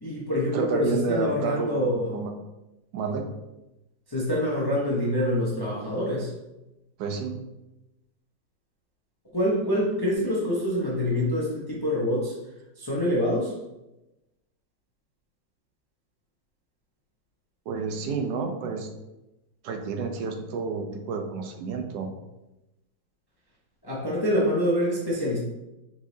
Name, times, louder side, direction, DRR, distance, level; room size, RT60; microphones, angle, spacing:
voice 1, 0.0-2.1 4.1-6.3 9.3-12.3 12.8-13.5 23.8-25.4, left 1 dB, 25° left, -5 dB, 0.5 m, -26 dB
voice 2, 0.5-2.3 2.9-3.2 7.0-7.3 17.7-18.9 19.6-22.1, right 5 dB, 75° right, 5 dB, 1.1 m, -30 dB
4.7 x 4.2 x 2.7 m, 0.97 s
omnidirectional pair, 1.8 m